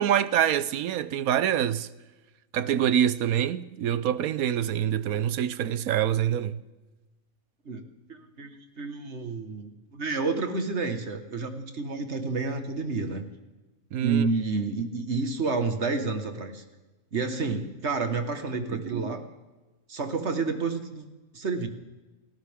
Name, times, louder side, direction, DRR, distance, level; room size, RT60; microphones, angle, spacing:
voice 1, 0.0-1.9 2.5-6.6 13.9-14.3 18.7-19.2, right 10 dB, 90° right, 1.2 m, -26 dB
voice 2, 7.7-13.2 14.0-16.6 17.1-19.2 19.9-21.0 21.3-21.7, right 4 dB, 55° right, 1.8 m, -30 dB
29.0 x 13.0 x 3.6 m
omnidirectional pair, 1.5 m